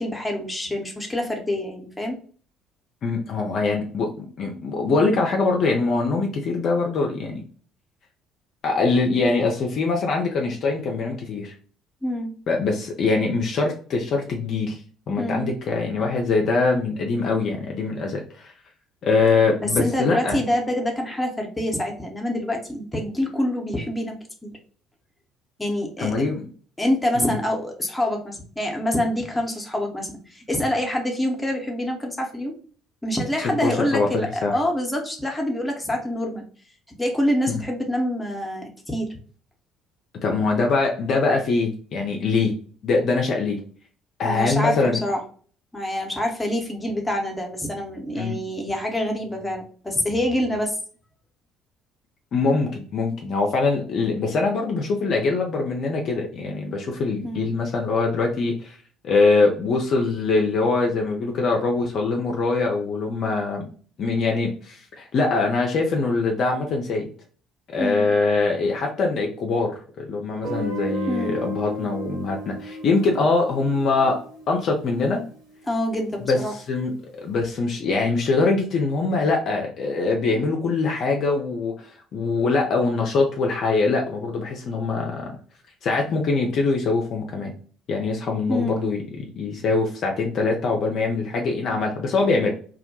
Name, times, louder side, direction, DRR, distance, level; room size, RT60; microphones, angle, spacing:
voice 1, 0.0-2.2 12.0-12.3 15.2-15.5 19.6-24.5 25.6-26.3 26.8-32.5 33.0-36.5 37.0-39.2 44.2-45.2 45.7-50.8 57.2-57.5 67.8-68.1 71.1-71.4 75.7-76.5 88.5-88.9, left 1 dB, 10° left, 1 dB, 0.7 m, -26 dB
voice 2, 3.0-7.4 8.6-11.5 12.5-14.8 15.1-18.5 19.0-20.4 26.0-26.4 27.2-27.3 33.6-34.1 34.4-34.6 40.2-42.5 42.8-43.6 44.2-45.0 48.2-48.4 52.3-58.8 59.0-63.7 64.0-67.1 67.7-74.2 74.5-75.2 76.3-76.4 76.7-81.7 82.1-85.3 85.8-87.5 87.9-92.5, left 3 dB, 50° left, 1 dB, 0.4 m, -23 dB
Guitar, 70.4-75.3, equal, 85° right, 0.8 m, -34 dB
2.2 x 2.1 x 2.8 m, 0.43 s
figure-of-eight pair, 50°, 0 cm